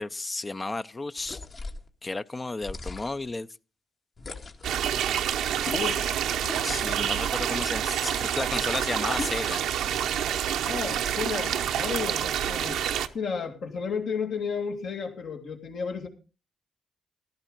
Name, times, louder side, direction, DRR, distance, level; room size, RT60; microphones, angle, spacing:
voice 1, 0.0-1.4 2.0-3.5 6.6-9.7, left 2 dB, 30° left, 0.5 m, -33 dB
sound 1, 1.2-1.9 2.6-3.3 4.2-4.8 5.6-6.1 6.4-7.0 7.8-8.3 9.2-9.7, left 3 dB, 55° left, 1.8 m, -39 dB
sound 2, 4.6-13.1, right 9 dB, 80° right, 0.7 m, -28 dB
voice 2, 5.7-6.3 10.6-16.1, left 6 dB, 70° left, 2.2 m, -33 dB
14.5 x 12.0 x 3.9 m
supercardioid pair, 50°, 0 cm